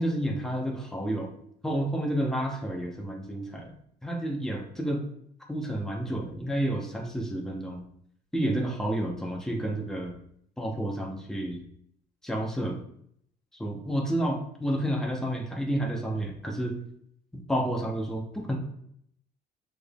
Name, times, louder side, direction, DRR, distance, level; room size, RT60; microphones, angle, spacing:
voice 1, 0.0-1.3 1.6-3.7 4.0-5.0 5.5-7.8 8.3-10.2 10.6-11.6 12.2-12.8 13.6-16.8 17.5-18.6, right 1 dB, 5° left, 0 dB, 0.9 m, -30 dB
6.1 x 3.5 x 2.3 m, 0.69 s
cardioid pair, 110°, 17 cm